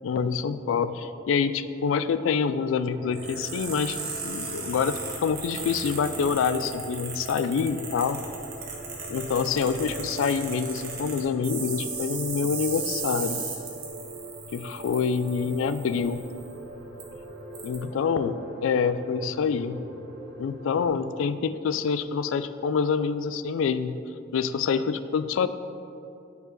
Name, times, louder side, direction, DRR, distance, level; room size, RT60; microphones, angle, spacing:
voice 1, 0.0-4.0 4.2-8.2 9.1-13.4 14.5-16.2 17.6-19.8 20.4-24.0 24.3-25.5, left 6 dB, 80° left, 13 dB, 0.3 m, -26 dB
sound 1, 2.9-20.9, right 1 dB, 80° right, 1.0 m, -42 dB
sound 2, 3.1-16.5 17.0-17.1 17.5-17.7, right 5 dB, 50° right, 1.3 m, -37 dB
9.2 x 4.9 x 3.8 m, 2.6 s
head